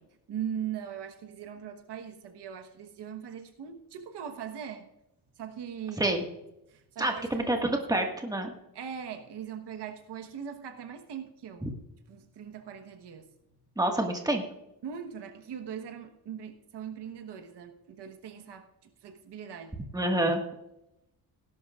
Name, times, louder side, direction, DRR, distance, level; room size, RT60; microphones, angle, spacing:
voice 1, 0.3-4.9 5.4-6.2 6.7-8.0 8.7-11.7 12.1-13.3 14.8-18.6 19.0-19.8, right 8 dB, 90° right, 6 dB, 1.3 m, -40 dB
voice 2, 7.0-8.5 11.6-11.7 13.8-14.4 19.9-20.4, right 1 dB, 10° right, 2 dB, 1.7 m, -27 dB
18.0 x 11.5 x 2.5 m, 0.88 s
wide cardioid pair, 130°, 40 cm